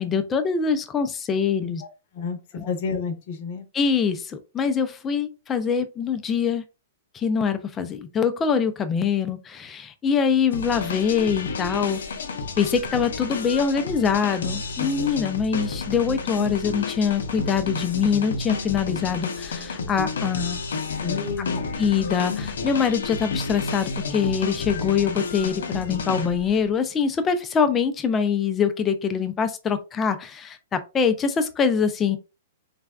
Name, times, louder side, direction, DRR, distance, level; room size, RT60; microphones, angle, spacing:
voice 1, 0.0-1.8 2.5-2.7 3.7-6.6 7.1-12.0 12.6-20.6 21.8-32.2, left 6 dB, 15° left, 0.4 m, -24 dB
voice 2, 2.7-3.6 21.0-21.7, left 5 dB, 50° left, 0.7 m, -29 dB
sound 1, 10.5-26.6, left 4 dB, 85° left, 0.6 m, -31 dB
3.3 x 2.2 x 2.3 m
hypercardioid pair, 145°, 0 cm